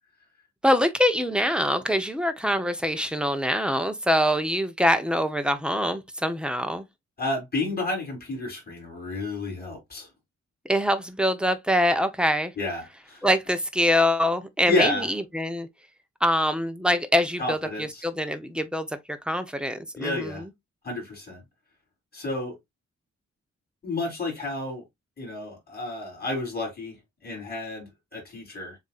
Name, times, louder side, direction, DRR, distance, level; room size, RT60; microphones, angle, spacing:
voice 1, 0.6-6.9 10.6-12.5 13.2-15.7 16.2-20.5, equal, 5° right, 0.8 m, -24 dB
voice 2, 7.2-10.1 12.6-13.3 14.6-15.1 17.4-18.1 20.0-20.4 20.8-21.4 22.1-22.6 23.8-24.8 25.2-27.0 27.2-28.8, left 2 dB, 35° left, 3.5 m, -30 dB
7.2 x 2.7 x 2.4 m
wide cardioid pair, 140°, 29 cm